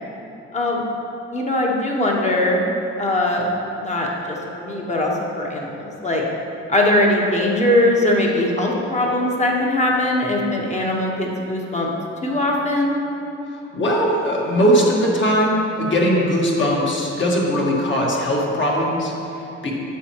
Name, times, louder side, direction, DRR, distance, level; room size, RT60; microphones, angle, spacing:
voice 1, 0.5-0.8 1.3-2.7 3.0-3.5 3.8-6.2 6.7-11.9 12.2-13.0, left 1 dB, 25° left, -2 dB, 1.3 m, -21 dB
voice 2, 13.7-19.8, equal, 40° left, -3 dB, 1.7 m, -20 dB
9.2 x 7.0 x 3.1 m, 2.9 s
cardioid pair, 90°, 30 cm